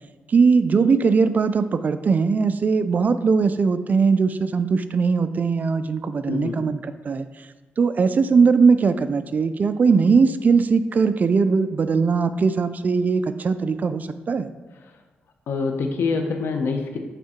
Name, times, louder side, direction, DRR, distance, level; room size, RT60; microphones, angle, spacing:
voice 1, 0.3-7.3 7.8-14.5, right 5 dB, 45° right, 11 dB, 0.4 m, -20 dB
voice 2, 6.3-6.6 15.5-17.0, left 4 dB, 85° left, 4 dB, 0.9 m, -25 dB
9.0 x 3.7 x 4.4 m, 1.3 s
cardioid pair, 100°, 4 cm